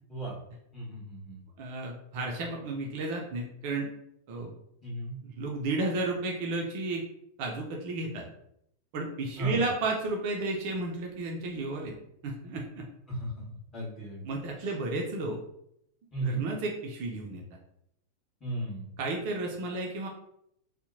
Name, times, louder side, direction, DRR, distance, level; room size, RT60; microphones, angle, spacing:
voice 1, 0.7-1.4 4.3-4.5 4.8-5.2 9.4-9.6 13.1-14.3 14.6-14.8 16.1-16.5 18.4-18.9, right 2 dB, 20° left, -6 dB, 1.4 m, -35 dB
voice 2, 1.6-3.9 4.3-4.5 5.2-7.0 7.4-8.3 8.9-12.0 12.2-12.9 14.2-15.4 16.2-17.4 19.0-20.1, right 2 dB, 45° right, 0 dB, 0.4 m, -32 dB
2.6 x 2.1 x 2.6 m, 0.76 s
figure-of-eight pair, 90°, 0 cm